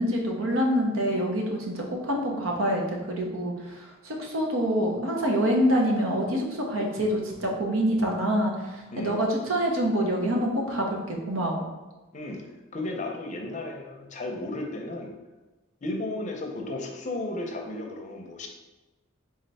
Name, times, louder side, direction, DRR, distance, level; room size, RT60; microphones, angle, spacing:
voice 1, 0.0-11.6, equal, 75° right, 0 dB, 0.8 m, -26 dB
voice 2, 8.9-9.2 12.1-12.4 12.7-15.1 15.8-18.5, left 2 dB, 35° left, 2 dB, 0.6 m, -34 dB
3.6 x 3.2 x 4.1 m, 1.1 s
head